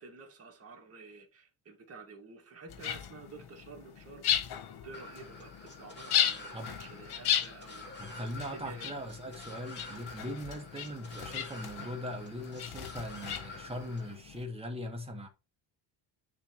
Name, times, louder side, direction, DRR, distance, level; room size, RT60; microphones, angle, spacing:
voice 1, 0.0-4.2 4.8-8.2 8.5-9.0 13.4-13.6, right 3 dB, 30° right, 1.8 m, -50 dB
sound 1, 2.7-14.4, left 10 dB, 55° left, 0.9 m, -36 dB
sound 2, 4.9-14.1, left 2 dB, 25° left, 2.3 m, -48 dB
voice 2, 8.0-15.3, equal, 15° right, 1.3 m, -40 dB
9.8 x 3.4 x 3.0 m
cardioid pair, 125°, 45 cm